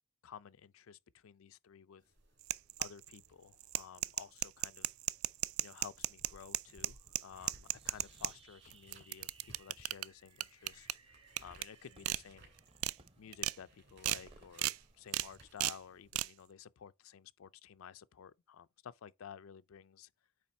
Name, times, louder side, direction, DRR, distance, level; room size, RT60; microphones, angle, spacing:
voice 1, 0.2-2.0 2.8-4.9 5.6-11.0 11.4-12.5 13.2-20.1, left 8 dB, 80° left, 0.4 m, -53 dB
sound 1, 2.0-16.1, right 1 dB, 55° right, 2.8 m, -64 dB
sound 2, 2.4-3.2 3.6-8.3 8.7-10.0 10.4-10.9 11.4-11.6 12.0-12.2 12.6-12.9 13.3-13.5 14.0-14.2 14.6-14.8 15.1-15.3 15.6-15.8 16.1-16.3, right 16 dB, 80° right, 0.3 m, -35 dB
Fireworks, 7.6-15.8, right 3 dB, 25° right, 0.7 m, -64 dB
8.6 x 3.3 x 4.2 m
head